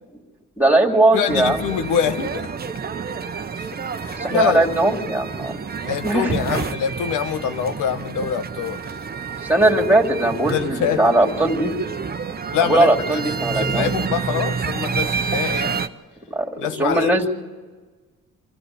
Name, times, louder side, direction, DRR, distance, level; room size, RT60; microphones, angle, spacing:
voice 1, 0.6-1.6 4.2-5.6 6.0-6.6 9.5-11.7 12.6-13.9 16.3-17.3, right 2 dB, 5° right, 0 dB, 2.8 m, -19 dB
voice 2, 1.1-2.5 3.5-3.7 4.0-4.6 5.8-8.8 10.5-11.1 12.5-12.9 13.5-15.8 16.6-17.2, left 8 dB, 90° left, 8 dB, 1.3 m, -24 dB
sound 1, 1.3-15.9, right 5 dB, 30° right, 1.0 m, -28 dB
25.0 x 14.0 x 8.4 m, 1.4 s
cardioid pair, 90°, 30 cm